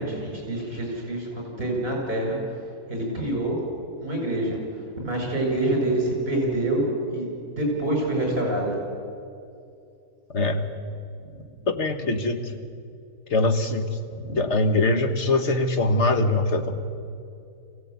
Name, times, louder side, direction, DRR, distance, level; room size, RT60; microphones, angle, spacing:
voice 1, 0.0-2.4 2.9-3.6 4.0-4.6 5.0-7.3 7.6-8.8 11.4-11.5 14.1-14.5, right 1 dB, 35° right, -1 dB, 7.2 m, -26 dB
voice 2, 10.3-10.7 11.7-12.4 13.3-13.9 14.3-16.7, left 2 dB, 45° left, 6 dB, 1.7 m, -22 dB
23.5 x 16.5 x 9.4 m, 2.5 s
omnidirectional pair, 1.7 m